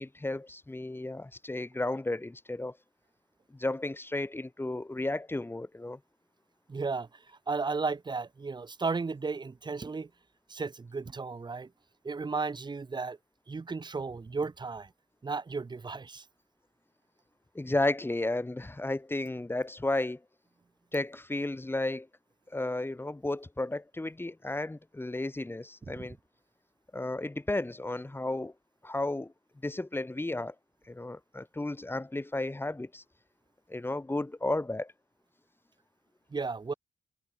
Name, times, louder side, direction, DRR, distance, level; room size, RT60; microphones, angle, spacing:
voice 1, 0.0-2.7 3.5-6.0 17.5-20.2 20.9-22.1 22.5-26.2 26.9-28.5 28.8-29.3 29.6-30.5 30.9-33.0 33.7-34.9, left 2 dB, 20° left, 7.2 m, -33 dB
voice 2, 6.7-10.1 10.5-11.7 12.0-13.2 13.5-14.9 15.2-16.3 26.0-26.1 36.3-36.7, right 4 dB, 35° right, 2.7 m, -34 dB
cardioid pair, 60°, 12 cm